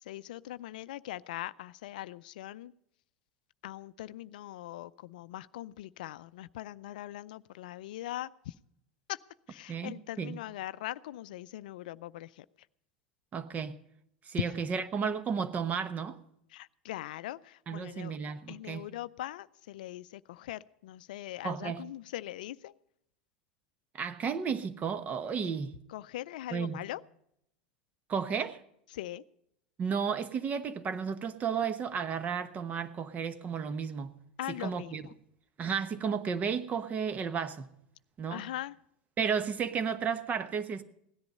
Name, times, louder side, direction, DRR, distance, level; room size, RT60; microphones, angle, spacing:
voice 1, 0.0-2.7 3.6-8.5 9.1-9.2 9.5-12.4 16.5-18.1 18.5-22.7 25.9-27.0 28.9-29.2 34.4-35.1 38.3-38.7, left 14 dB, 70° left, 16 dB, 0.4 m, -41 dB
voice 2, 9.7-10.4 13.3-13.8 14.3-16.2 17.7-18.9 21.4-21.8 23.9-25.8 26.5-26.8 28.1-28.6 29.8-34.2 34.5-35.0 35.6-37.7 38.2-38.5 39.2-40.8, right 6 dB, 35° right, 12 dB, 1.1 m, -33 dB
17.0 x 10.5 x 5.5 m, 0.75 s
hypercardioid pair, 90°, 5 cm